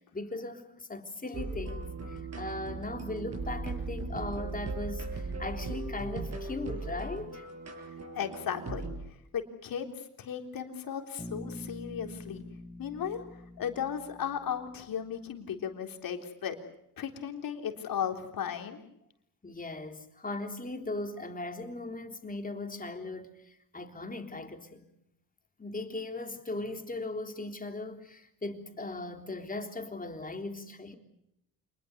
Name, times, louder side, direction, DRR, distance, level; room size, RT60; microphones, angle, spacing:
voice 1, 0.0-7.4 19.4-24.8 25.6-30.9, left 2 dB, 25° left, 3.6 m, -38 dB
sound 1, 1.3-9.0, right 3 dB, 45° right, 7.3 m, -38 dB
voice 2, 8.2-8.9 9.3-12.5 12.8-16.6 17.0-18.8, left 8 dB, 70° left, 3.8 m, -36 dB
Bass guitar, 11.2-15.2, left 1 dB, 10° right, 6.8 m, -46 dB
27.0 x 21.0 x 8.1 m
cardioid pair, 90°, 36 cm